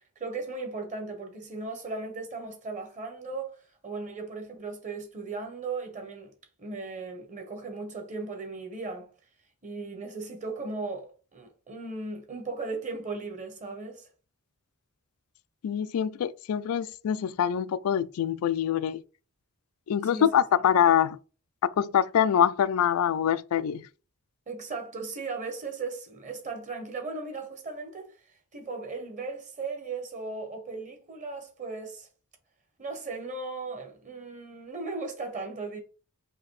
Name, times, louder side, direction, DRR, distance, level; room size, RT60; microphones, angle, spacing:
voice 1, 0.2-3.5 3.8-6.3 6.6-9.1 9.6-14.1 20.0-20.3 24.5-28.1 28.5-32.1 32.8-35.8, right 3 dB, 35° right, 1.0 m, -37 dB
voice 2, 15.6-19.0 19.9-21.2 21.8-23.9, left 9 dB, 90° left, 0.3 m, -24 dB
5.0 x 2.8 x 3.1 m
head